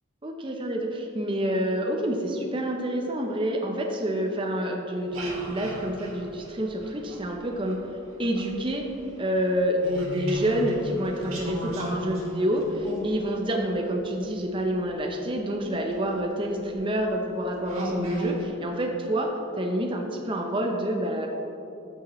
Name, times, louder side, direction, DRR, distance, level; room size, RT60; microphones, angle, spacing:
voice 1, 0.2-7.9 8.2-8.9 9.2-21.3, equal, 25° right, 1 dB, 0.7 m, -28 dB
sound 1, 5.0-7.7 8.1-14.9 15.8-15.9 16.5-16.7 17.2-17.3 17.7-18.5, equal, 85° right, 1.6 m, -35 dB
14.5 x 5.1 x 3.1 m, 2.7 s
head